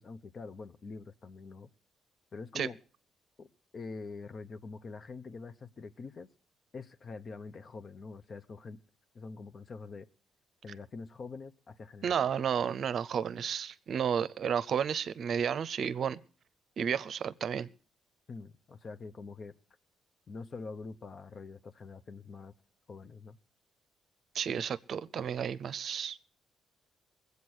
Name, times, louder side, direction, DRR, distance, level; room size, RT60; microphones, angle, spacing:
voice 1, 0.0-1.7 2.3-2.8 3.4-3.5 3.7-6.3 6.7-8.8 9.1-10.1 10.6-12.3 18.3-19.5 20.3-22.5 22.9-23.4, left 4 dB, 45° left, 0.8 m, -45 dB
voice 2, 12.0-16.2 16.8-17.7 24.3-26.2, right 8 dB, 60° right, 0.6 m, -32 dB
20.5 x 8.3 x 6.3 m
cardioid pair, 90°, 0 cm